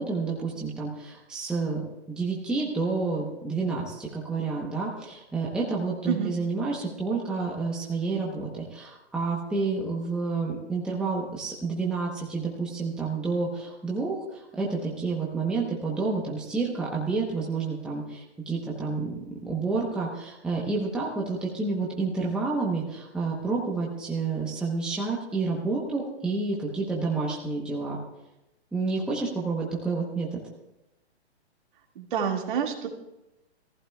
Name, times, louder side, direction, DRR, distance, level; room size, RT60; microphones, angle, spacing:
voice 1, 0.0-1.8 2.1-28.0 28.7-30.4, right 4 dB, 5° right, -3 dB, 0.9 m, -29 dB
voice 2, 32.0-32.9, right 7 dB, 50° right, 2 dB, 2.2 m, -28 dB
21.0 x 14.5 x 2.3 m, 0.92 s
hypercardioid pair, 160°, 33 cm